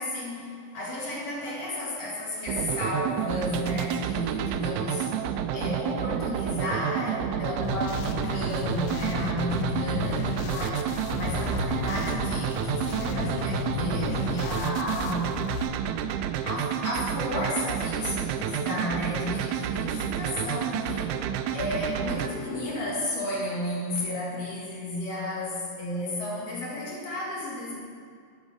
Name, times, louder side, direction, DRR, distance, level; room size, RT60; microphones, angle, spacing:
voice 1, 0.0-15.4 16.4-21.2 21.5-27.7, left 1 dB, 55° left, -5 dB, 2.9 m, -33 dB
sound 1, 2.5-22.3, right 9 dB, 80° right, 1.8 m, -30 dB
sound 2, 7.6-15.6, left 5 dB, 75° left, 1.9 m, -33 dB
8.5 x 8.1 x 6.3 m, 2.2 s
omnidirectional pair, 3.8 m